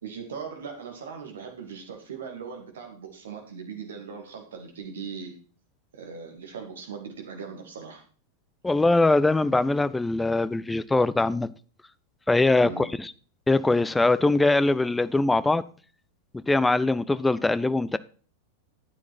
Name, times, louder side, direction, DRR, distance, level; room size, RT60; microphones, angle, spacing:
voice 1, 0.0-5.3 5.9-8.0 12.6-12.9, right 6 dB, 65° right, 2.5 m, -39 dB
voice 2, 8.6-11.5 12.3-13.1 13.5-15.6 16.3-18.0, left 2 dB, 10° left, 0.5 m, -22 dB
11.5 x 8.9 x 4.2 m
figure-of-eight pair, 90°, 0 cm